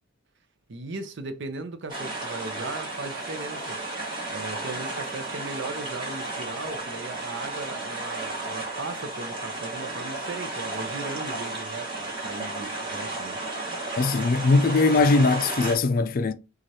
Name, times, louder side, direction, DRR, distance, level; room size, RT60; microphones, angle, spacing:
voice 1, 0.7-3.8 4.3-13.4 14.5-14.7, right 3 dB, 60° right, 0.7 m, -37 dB
sound 1, 1.9-15.8, right 2 dB, 25° right, 1.8 m, -33 dB
voice 2, 14.0-16.3, left 3 dB, 45° left, 0.4 m, -21 dB
6.1 x 2.4 x 2.8 m
head